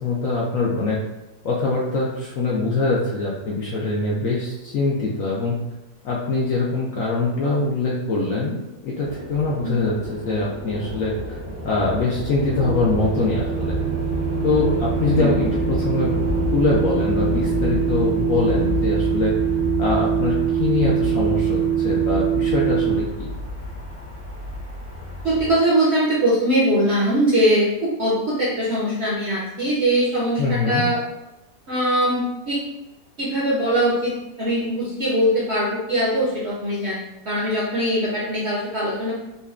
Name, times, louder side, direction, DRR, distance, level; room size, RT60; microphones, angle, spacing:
voice 1, 0.0-1.0 1.4-5.5 6.0-11.4 11.6-13.8 14.4-16.1 16.5-19.3 19.8-23.3 30.4-30.9, left 3 dB, 70° left, -4 dB, 0.8 m, -23 dB
sound 1, 9.0-25.5, left 2 dB, 20° right, 0.4 m, -30 dB
sound 2, 12.5-23.0, right 9 dB, 75° right, 1.5 m, -23 dB
voice 2, 25.2-31.0 31.7-32.6 33.2-39.1, right 1 dB, 55° right, -6 dB, 0.7 m, -21 dB
5.3 x 2.2 x 2.4 m, 0.96 s
omnidirectional pair, 1.9 m